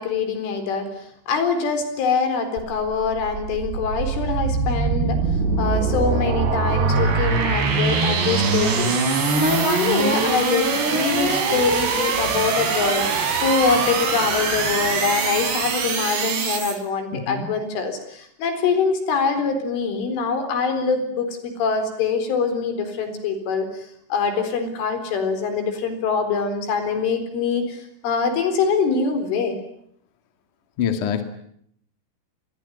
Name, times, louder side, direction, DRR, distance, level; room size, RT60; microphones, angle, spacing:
voice 1, 0.0-5.2 5.6-23.9 24.1-29.6, left 5 dB, 75° left, 9 dB, 6.5 m, -24 dB
sound 1, 2.6-16.8, right 4 dB, 60° right, 6.0 m, -22 dB
voice 2, 17.1-17.5 30.8-31.2, left 8 dB, 50° left, 7 dB, 3.0 m, -25 dB
27.0 x 22.0 x 9.7 m, 0.69 s
omnidirectional pair, 5.6 m